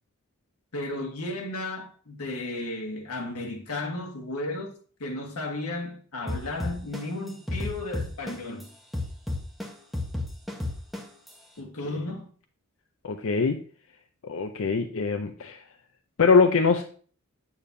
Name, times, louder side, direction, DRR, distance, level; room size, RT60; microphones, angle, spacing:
voice 1, 0.7-8.7 11.6-12.2, left 2 dB, 90° left, 1.5 m, -34 dB
sound 1, 6.3-8.6 8.9-11.3, left 2 dB, ahead, 1.1 m, -31 dB
voice 2, 13.0-13.6 14.2-15.6 16.2-16.8, left 5 dB, 65° left, 0.5 m, -22 dB
8.4 x 7.1 x 2.7 m
head